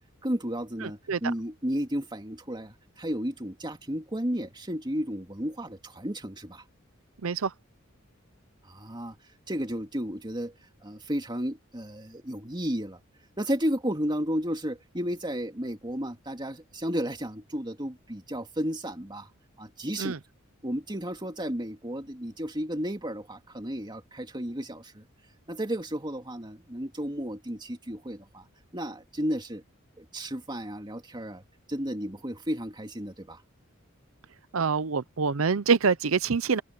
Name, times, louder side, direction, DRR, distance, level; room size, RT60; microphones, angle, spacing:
voice 1, 0.2-6.6 8.6-9.2 9.5-10.5 10.8-13.0 13.4-19.3 19.6-20.2 20.6-25.0 25.5-28.5 28.7-29.6 30.0-31.4 31.7-33.4, equal, 20° right, 2.8 m, -33 dB
voice 2, 0.8-1.2 7.2-7.5 20.0-20.2 34.5-36.6, right 5 dB, 85° right, 0.7 m, -25 dB
head